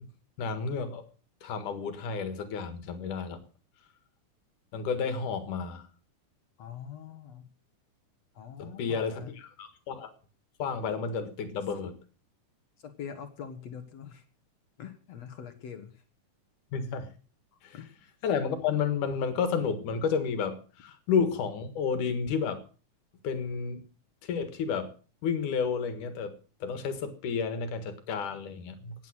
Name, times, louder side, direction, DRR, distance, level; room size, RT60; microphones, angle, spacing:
voice 1, 0.4-1.0 1.4-3.4 4.7-5.8 8.6-10.1 10.6-12.0 16.7-17.1 17.6-17.8 18.2-22.6 23.2-23.8 24.2-24.9 25.2-26.3 26.6-28.9, left 6 dB, 80° left, 10 dB, 3.1 m, -31 dB
voice 2, 6.6-7.5 8.3-9.4 12.8-14.2 14.8-16.0 17.7-17.9, left 8 dB, 60° left, 9 dB, 2.4 m, -43 dB
17.5 x 9.1 x 6.3 m, 0.38 s
omnidirectional pair, 3.6 m